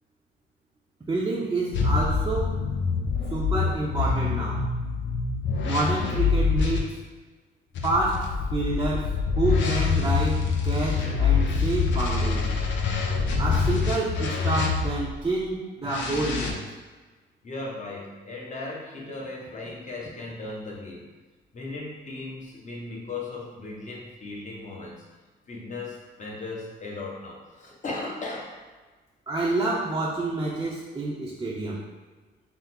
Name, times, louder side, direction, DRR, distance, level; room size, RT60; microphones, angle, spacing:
voice 1, 1.1-2.6 3.3-4.6 5.6-7.0 7.8-12.5 13.4-16.6 29.3-31.8, right 2 dB, 20° right, -5 dB, 0.6 m, -28 dB
sound 1, 1.7-6.8 7.7-15.1 15.8-16.5, left 5 dB, 70° left, 0.6 m, -25 dB
voice 2, 17.4-21.1 21.5-25.0 25.5-28.5, left 2 dB, 40° left, -3 dB, 1.1 m, -37 dB
3.9 x 2.0 x 4.2 m, 1.3 s
cardioid pair, 90°, 20 cm